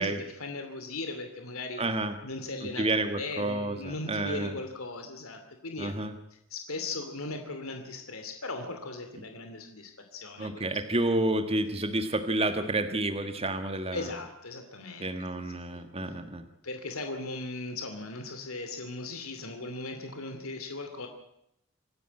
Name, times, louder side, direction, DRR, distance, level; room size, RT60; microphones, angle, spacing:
voice 1, 0.0-1.8 2.2-5.9 6.3-10.8 13.9-15.1 15.7-16.1 16.6-21.1, left 2 dB, 85° left, 5 dB, 2.7 m, -38 dB
voice 2, 1.8-2.1 2.6-4.6 5.8-6.1 10.4-14.1 15.0-16.5, right 2 dB, 30° right, 8 dB, 1.5 m, -30 dB
26.5 x 10.0 x 9.9 m, 0.78 s
head